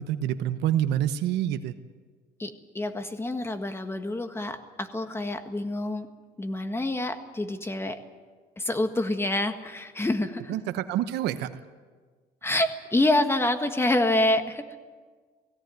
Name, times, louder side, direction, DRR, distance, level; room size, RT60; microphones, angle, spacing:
voice 1, 0.0-1.7 10.5-11.5, right 11 dB, 85° right, 10 dB, 1.0 m, -27 dB
voice 2, 2.4-6.1 6.4-8.0 8.6-10.5 12.4-14.6, left 1 dB, 15° left, 8 dB, 1.6 m, -27 dB
18.5 x 16.5 x 9.3 m, 1.5 s
cardioid pair, 110°, 17 cm